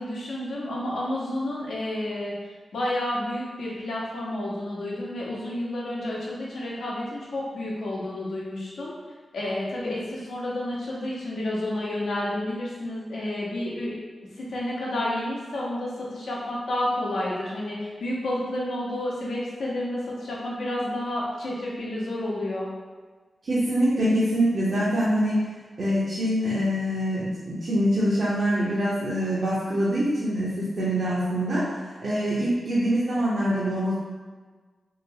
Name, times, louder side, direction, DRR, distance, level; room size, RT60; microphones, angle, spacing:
voice 1, 0.0-2.3 2.7-8.9 9.3-14.0 14.4-22.7, left 1 dB, 85° left, -6 dB, 0.8 m, -30 dB
voice 2, 23.4-25.4 25.8-31.7 32.0-33.9, equal, 65° right, -9 dB, 0.7 m, -24 dB
3.0 x 2.9 x 2.7 m, 1.4 s
cardioid pair, 45°, 0 cm